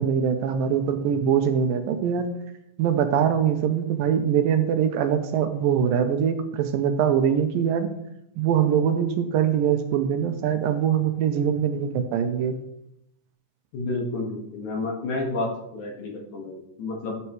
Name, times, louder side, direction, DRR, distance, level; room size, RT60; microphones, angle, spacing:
voice 1, 0.0-2.3 2.8-7.9 8.4-12.6, right 8 dB, 80° right, 7 dB, 2.4 m, -23 dB
voice 2, 13.7-17.2, left 2 dB, 55° left, 0 dB, 2.8 m, -30 dB
14.5 x 8.2 x 3.1 m, 0.78 s
omnidirectional pair, 4.3 m